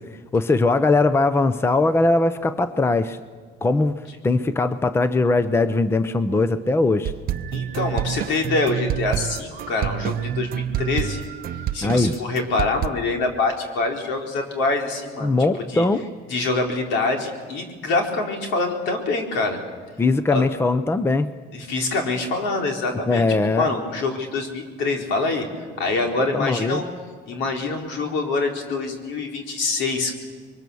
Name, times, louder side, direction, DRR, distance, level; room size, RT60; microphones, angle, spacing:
voice 1, 0.3-3.2 3.6-7.1 11.8-12.1 15.2-16.1 20.0-21.3 23.1-23.7 26.3-26.8, left 3 dB, 15° left, 13 dB, 0.7 m, -20 dB
Reggae Whistle With Me, 7.0-12.9, right 10 dB, 55° right, 0.7 m, -27 dB
voice 2, 7.5-11.2 11.7-15.3 15.7-15.8 16.3-19.6 20.3-20.5 21.5-23.2 23.6-26.8 27.3-30.1, left 3 dB, 80° left, 2 dB, 3.9 m, -25 dB
26.5 x 23.0 x 7.0 m, 1.5 s
cardioid pair, 135°, 19 cm